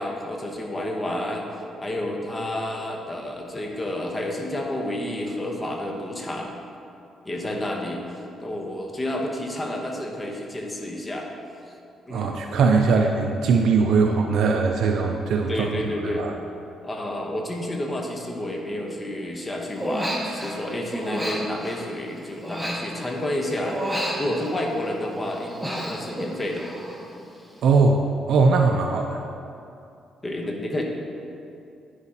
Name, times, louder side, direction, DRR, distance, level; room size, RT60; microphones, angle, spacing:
voice 1, 0.0-1.5 1.8-6.5 7.2-8.0 8.4-11.3 12.0-12.3 15.5-16.3 16.8-26.7 30.2-30.8, left 1 dB, 20° left, 1 dB, 0.9 m, -30 dB
voice 2, 12.1-15.7 16.0-16.3 27.6-29.2, right 4 dB, 75° right, 2 dB, 0.4 m, -20 dB
Human voice, 19.8-20.6 20.9-23.3 23.6-24.9 25.2-27.1 27.3-27.7, equal, ahead, 1.0 m, -31 dB
9.9 x 4.9 x 2.8 m, 2.6 s
cardioid pair, 90°, 0 cm